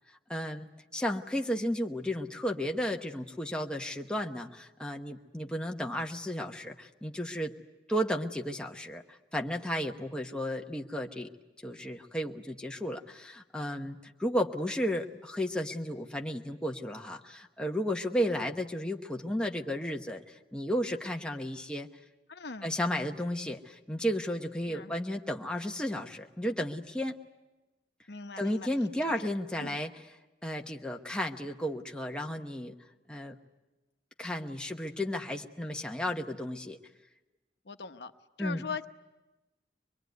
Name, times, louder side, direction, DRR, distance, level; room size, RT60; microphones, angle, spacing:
voice 1, 0.3-7.5 7.9-11.3 11.6-21.9 22.6-27.2 28.4-30.1 30.4-32.7 33.1-33.4 34.2-36.8 38.4-38.6, equal, 5° left, 1 dB, 1.0 m, -33 dB
voice 2, 22.3-22.7 24.7-24.9 28.1-28.7 29.0-29.3 29.6-29.8 37.7-38.1 38.4-38.9, left 4 dB, 70° left, 8 dB, 1.0 m, -40 dB
24.0 x 21.5 x 9.4 m, 1.1 s
head